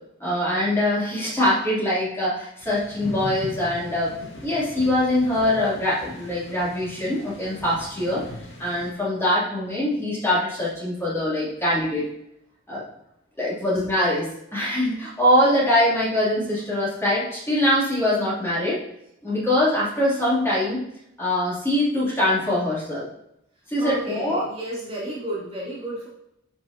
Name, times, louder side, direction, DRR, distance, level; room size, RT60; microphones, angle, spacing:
voice 1, 0.2-4.1 4.4-8.2 8.6-12.0 12.7-12.8 13.4-18.8 19.2-20.8 21.2-23.0 23.7-24.4, left 1 dB, 10° left, -9 dB, 3.2 m, -23 dB
sound 1, 2.6-8.9, left 1 dB, 70° left, 2.1 m, -40 dB
voice 2, 23.8-26.1, right 1 dB, 30° right, -7 dB, 2.8 m, -32 dB
10.5 x 6.3 x 2.9 m, 0.79 s
head